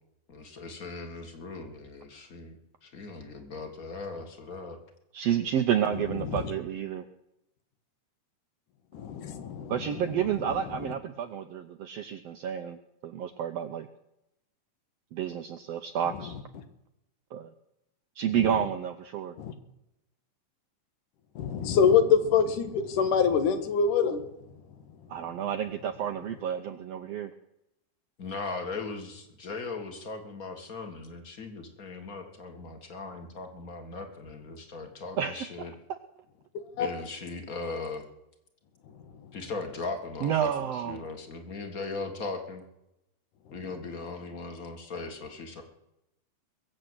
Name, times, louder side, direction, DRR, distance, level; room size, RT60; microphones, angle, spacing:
voice 1, 0.3-4.8 28.2-35.7 36.7-38.0 39.3-42.6 43.5-45.6, left 3 dB, 35° left, 6 dB, 1.8 m, -38 dB
voice 2, 5.1-7.0 9.7-13.9 15.1-16.4 17.3-17.5 18.2-19.3 25.1-27.3 35.2-35.5 35.9-36.0 40.2-41.0, right 9 dB, 75° right, 8 dB, 1.5 m, -30 dB
voice 3, 8.9-9.7 19.4-19.5 21.4-24.2 36.8-36.9, left 6 dB, 80° left, 9 dB, 2.9 m, -24 dB
22.0 x 7.7 x 8.0 m, 0.86 s
omnidirectional pair, 3.6 m